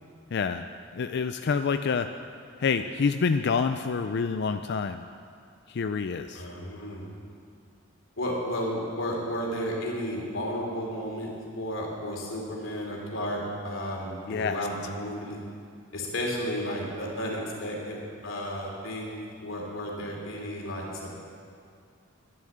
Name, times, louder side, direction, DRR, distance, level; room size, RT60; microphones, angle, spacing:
voice 1, 0.3-0.7 0.9-2.1 2.6-5.0 5.7-6.4 14.3-14.6, left 5 dB, 55° left, 9 dB, 0.4 m, -27 dB
voice 2, 6.3-7.1 8.2-11.3 11.6-15.4 15.9-18.0 18.2-21.2, equal, 80° left, -1 dB, 3.1 m, -33 dB
11.0 x 11.0 x 7.8 m, 2.3 s
head